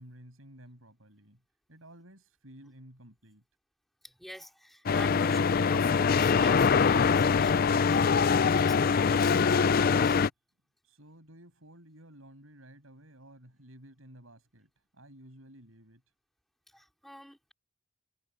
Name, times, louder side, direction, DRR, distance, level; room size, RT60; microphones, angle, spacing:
voice 1, 0.0-1.4 1.7-3.4 10.8-16.0, right 1 dB, 70° right, 7.5 m, -53 dB
voice 2, 4.0-10.2 16.7-17.5, equal, ahead, 3.2 m, -48 dB
sound 1, 4.9-10.3, left 5 dB, 45° left, 0.4 m, -23 dB
head